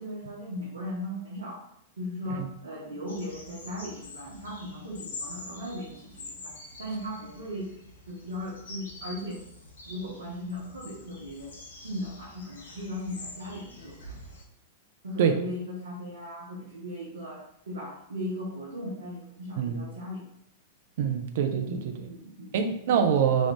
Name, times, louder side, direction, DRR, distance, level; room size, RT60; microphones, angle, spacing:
voice 1, 0.0-1.6 2.0-7.7 8.1-9.4 9.9-14.2 15.0-20.3 21.6-22.7 23.2-23.3, left 1 dB, 85° right, -6 dB, 0.9 m, -38 dB
sound 1, 3.1-14.4, left 2 dB, 80° left, 0.8 m, -46 dB
voice 2, 21.0-21.8 22.5-23.5, right 7 dB, 60° right, 6 dB, 0.5 m, -24 dB
3.0 x 2.4 x 3.5 m, 0.73 s
hypercardioid pair, 105°, 0 cm